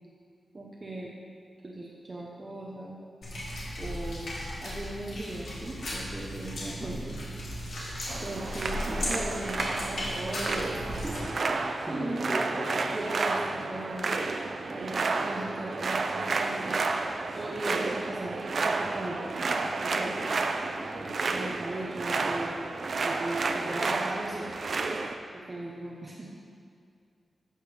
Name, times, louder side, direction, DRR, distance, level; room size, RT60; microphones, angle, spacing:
voice 1, 0.5-1.1 1.6-3.0 3.8-4.3 4.6-7.5 8.2-12.3 12.9-14.2 14.7-16.8 17.4-19.6 19.8-20.2 20.6-22.5 23.0-24.5 25.3-26.3, right 1 dB, 25° right, -4 dB, 0.9 m, -38 dB
sound 1, 3.2-11.2, left 1 dB, 75° left, 2.8 m, -36 dB
voice 2, 6.8-7.1 11.4-13.0 13.5-13.6, equal, ahead, -4 dB, 1.6 m, -38 dB
sound 2, 8.1-25.2, right 3 dB, 50° right, 0.5 m, -31 dB
13.0 x 8.2 x 3.5 m, 2.3 s
wide cardioid pair, 170°, 0 cm